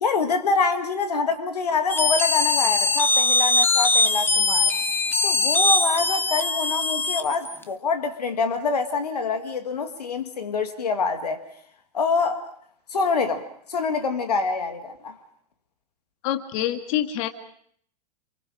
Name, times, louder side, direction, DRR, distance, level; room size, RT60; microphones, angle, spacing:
voice 1, 0.0-4.7 5.2-11.4 11.9-12.4 12.9-13.4 13.7-15.2, left 4 dB, 80° left, 7 dB, 2.0 m, -25 dB
sound 1, 1.9-7.6, left 3 dB, 10° left, 1.3 m, -21 dB
voice 2, 16.2-17.3, left 12 dB, 55° left, 7 dB, 2.1 m, -26 dB
28.5 x 27.5 x 5.1 m, 0.64 s
hypercardioid pair, 95°, 20 cm